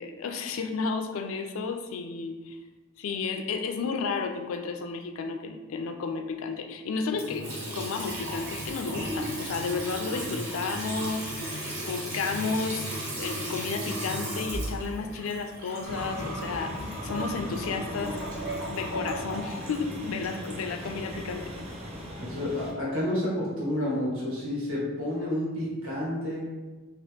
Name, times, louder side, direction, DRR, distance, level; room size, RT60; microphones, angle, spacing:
voice 1, 0.0-2.6 3.0-18.3 18.7-21.5, left 4 dB, 75° left, 6 dB, 0.4 m, -32 dB
Water tap faucet / Sink (filling or washing) / Trickle dribble, 7.1-21.2, right 1 dB, 60° right, 1.3 m, -35 dB
sound 1, 15.8-22.7, equal, 30° right, 0.6 m, -39 dB
voice 2, 22.2-26.5, left 1 dB, 75° right, -6 dB, 1.4 m, -30 dB
3.0 x 2.9 x 3.3 m, 1.2 s
head